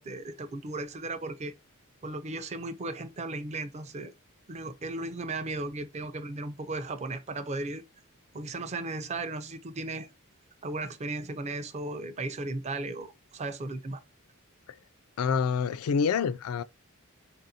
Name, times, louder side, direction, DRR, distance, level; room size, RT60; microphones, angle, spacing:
voice 1, 0.0-1.5 2.0-4.1 4.5-7.8 8.3-10.1 10.6-14.0, right 2 dB, 30° right, 0.4 m, -36 dB
voice 2, 15.2-16.6, left 6 dB, 80° left, 0.3 m, -27 dB
4.1 x 2.5 x 2.7 m
head